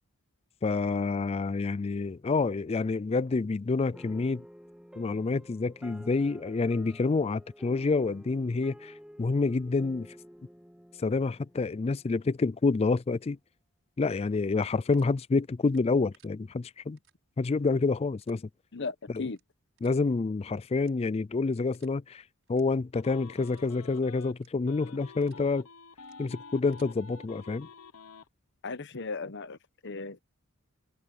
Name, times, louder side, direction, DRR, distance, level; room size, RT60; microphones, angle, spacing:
voice 1, 0.6-4.4 5.0-8.9 9.2-10.1 11.0-13.4 14.0-17.0 17.4-18.4 19.1-19.2 19.8-22.2 22.5-25.7 26.2-27.7, left 3 dB, 25° left, 0.3 m, -28 dB
sound 1, 3.9-12.5, equal, 5° right, 1.6 m, -51 dB
sound 2, 14.5-15.1 15.6-16.3 17.0-17.1 17.5-17.7 18.2-18.4 19.2-19.4 19.8-20.0 20.7-21.2 21.7-21.9 22.4-22.6 23.0-23.1 23.5-23.7 24.3-24.5 25.0-25.4 26.0-26.2 26.5-26.9, right 11 dB, 60° right, 6.5 m, -64 dB
voice 2, 18.7-19.4 28.6-30.2, left 4 dB, 55° left, 1.0 m, -36 dB
sound 3, 22.9-24.3 24.7-28.3, left 4 dB, 80° left, 1.2 m, -49 dB
head